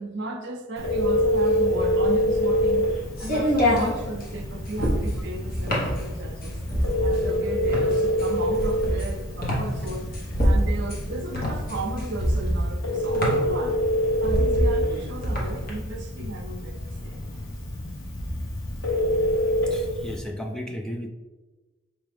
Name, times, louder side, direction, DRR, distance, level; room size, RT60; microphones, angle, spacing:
voice 1, 0.0-2.9 3.2-6.6 7.0-13.8 14.2-17.2, right 2 dB, 60° right, 0.5 m, -35 dB
Telephone, 0.8-20.2, equal, 80° left, 1.2 m, -27 dB
sound 1, 1.8-15.7, equal, 45° left, 1.1 m, -26 dB
voice 2, 19.7-21.1, equal, 5° left, 0.3 m, -34 dB
4.7 x 3.3 x 3.4 m
head